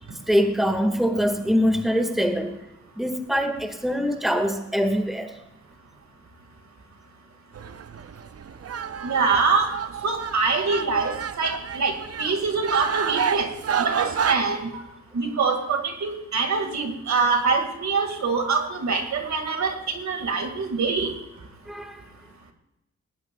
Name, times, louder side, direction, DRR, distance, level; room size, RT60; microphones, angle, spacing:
voice 1, 0.3-2.6 3.0-5.3 21.7-22.0, equal, ahead, 5 dB, 1.8 m, -23 dB
sound 1, 7.5-14.4, right 7 dB, 55° right, 0.7 m, -29 dB
voice 2, 9.0-9.7 10.0-13.5 13.8-14.7 15.1-21.1, right 4 dB, 75° right, 5 dB, 2.0 m, -24 dB
19.5 x 17.0 x 2.3 m, 0.88 s
cardioid pair, 75°, 29 cm